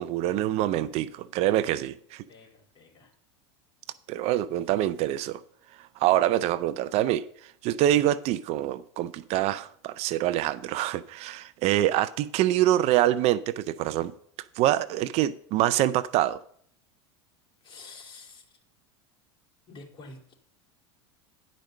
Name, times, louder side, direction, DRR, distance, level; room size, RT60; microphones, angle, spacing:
voice 1, 0.0-2.2 4.1-5.4 6.0-14.1 14.6-16.4, right 13 dB, 50° right, 0.4 m, -25 dB
voice 2, 2.3-3.1 17.6-18.6 19.7-20.4, left 3 dB, 35° left, 2.9 m, -48 dB
10.5 x 5.1 x 6.4 m
hypercardioid pair, 100°, 14 cm